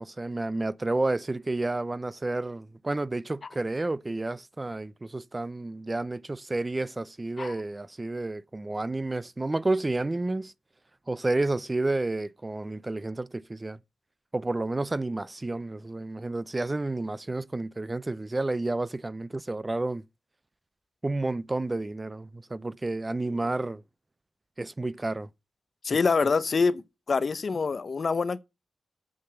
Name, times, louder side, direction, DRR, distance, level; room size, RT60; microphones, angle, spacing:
voice 1, 0.0-10.5 11.1-13.8 14.3-20.0 21.0-23.8 24.6-25.3, right 2 dB, 20° right, 0.4 m, -30 dB
voice 2, 25.8-26.8 27.1-28.4, left 4 dB, 50° left, 0.7 m, -25 dB
8.6 x 5.8 x 7.9 m
cardioid pair, 90°, 0 cm